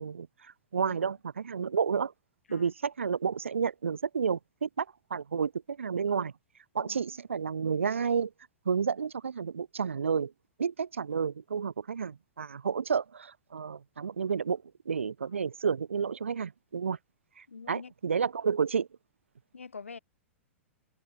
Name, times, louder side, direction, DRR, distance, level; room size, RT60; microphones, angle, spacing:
voice 1, 0.0-2.1 2.5-6.3 6.7-8.3 8.6-10.3 10.6-17.0 17.4-18.9, right 6 dB, 75° right, 1.0 m, -31 dB
voice 2, 17.5-17.9 19.5-20.0, left 5 dB, 75° left, 4.0 m, -45 dB
figure-of-eight pair, 100°, 7 cm